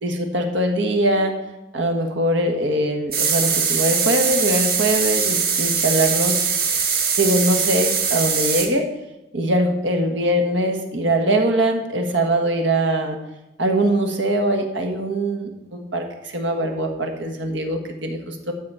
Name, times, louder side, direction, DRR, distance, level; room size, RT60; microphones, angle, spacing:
voice 1, 0.0-1.3 1.7-6.6 7.2-8.9 9.3-13.2 13.6-18.5, right 1 dB, 90° right, 4 dB, 1.6 m, -22 dB
sound 1, 3.1-8.7, right 6 dB, 55° right, 1.5 m, -21 dB
12.5 x 4.2 x 7.5 m, 0.95 s
head